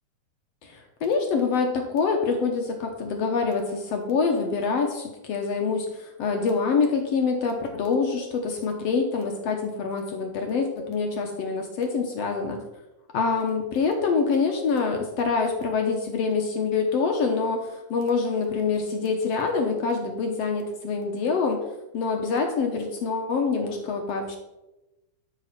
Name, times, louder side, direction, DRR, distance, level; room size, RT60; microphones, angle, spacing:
voice 1, 0.6-12.6 13.1-21.6 21.9-24.4, left 4 dB, 65° left, 3 dB, 1.8 m, -25 dB
12.0 x 4.2 x 5.8 m, 1.0 s
omnidirectional pair, 3.6 m